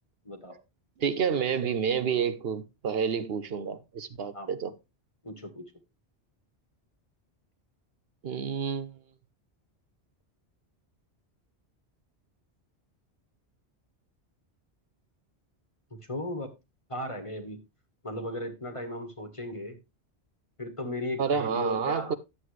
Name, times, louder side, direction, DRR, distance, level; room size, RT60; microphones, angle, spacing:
voice 1, 0.2-0.6 4.3-4.5 5.2-5.7 15.9-16.5 16.9-17.6 18.0-19.8 20.6-22.2, left 1 dB, 30° left, 1.4 m, -36 dB
voice 2, 1.0-4.7 8.2-8.9 21.2-22.1, right 6 dB, 65° right, 0.9 m, -29 dB
11.5 x 7.6 x 3.2 m
omnidirectional pair, 1.1 m